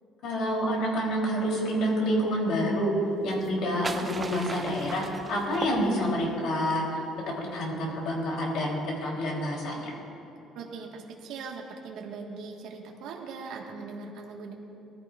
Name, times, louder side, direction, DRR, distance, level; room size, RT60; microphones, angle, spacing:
voice 1, 0.2-2.9 3.2-6.8 7.5-9.9, equal, 65° left, -1 dB, 3.0 m, -28 dB
sound 1, 3.3-6.4, right 3 dB, 15° right, 0.4 m, -38 dB
voice 2, 10.5-14.5, right 4 dB, 65° right, 0 dB, 1.4 m, -40 dB
19.5 x 14.5 x 2.4 m, 2.9 s
cardioid pair, 175°, 0 cm